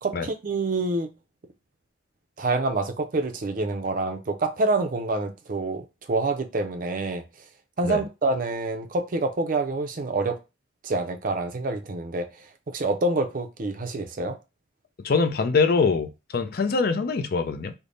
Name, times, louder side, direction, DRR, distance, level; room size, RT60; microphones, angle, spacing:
voice 1, 0.0-1.1 2.4-7.2 7.8-10.4 10.8-12.3 12.7-14.4, right 2 dB, 45° right, 0.5 m, -27 dB
voice 2, 15.0-17.7, left 4 dB, 55° left, 0.4 m, -23 dB
3.3 x 2.1 x 3.9 m
head